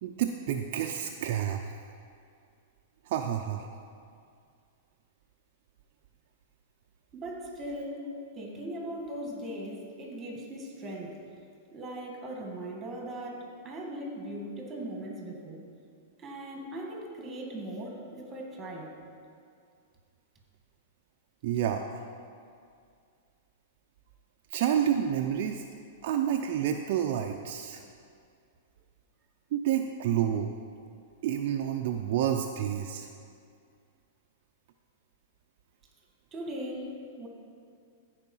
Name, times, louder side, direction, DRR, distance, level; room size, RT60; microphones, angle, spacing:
voice 1, 0.0-1.6 3.1-3.7 21.4-22.0 24.5-25.6 26.0-27.8 29.5-30.5 31.2-33.1, right 9 dB, 55° right, 3 dB, 0.5 m, -29 dB
voice 2, 7.1-8.1 8.4-11.2 11.7-15.6 16.2-18.9 36.3-37.3, right 1 dB, 20° right, 0 dB, 2.0 m, -39 dB
14.5 x 4.9 x 5.6 m, 2.3 s
hypercardioid pair, 140°, 0 cm